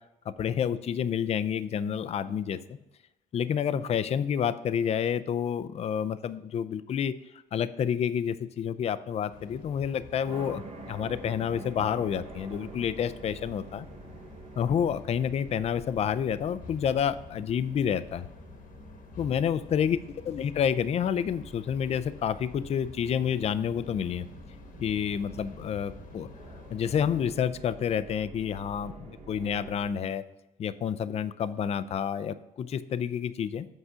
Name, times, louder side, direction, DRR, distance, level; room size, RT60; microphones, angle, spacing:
voice 1, 0.4-2.8 3.3-7.1 7.5-13.9 14.6-18.3 19.2-20.0 20.2-24.3 24.8-26.3 26.7-30.2 30.6-33.7, left 8 dB, 40° left, 13 dB, 0.4 m, -29 dB
sound 1, 9.3-27.3, left 5 dB, 55° left, 1.2 m, -49 dB
sound 2, 10.2-29.9, right 3 dB, 40° right, 1.1 m, -48 dB
8.1 x 4.9 x 5.6 m, 0.95 s
cardioid pair, 110°, 17 cm